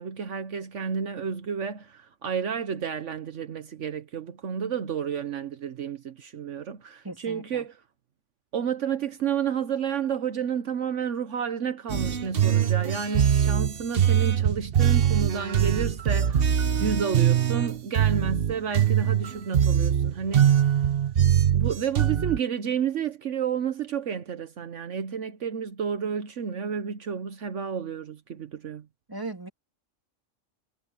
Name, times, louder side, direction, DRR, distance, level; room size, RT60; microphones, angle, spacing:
voice 1, 0.0-7.7 8.5-16.5 16.8-20.6 21.5-28.9, right 7 dB, 75° right, 1.3 m, -31 dB
voice 2, 7.0-7.6 16.7-16.9 29.1-29.5, right 2 dB, 15° right, 2.9 m, -38 dB
sound 1, 11.9-22.4, right 9 dB, 50° right, 1.1 m, -22 dB
omnidirectional pair, 1.3 m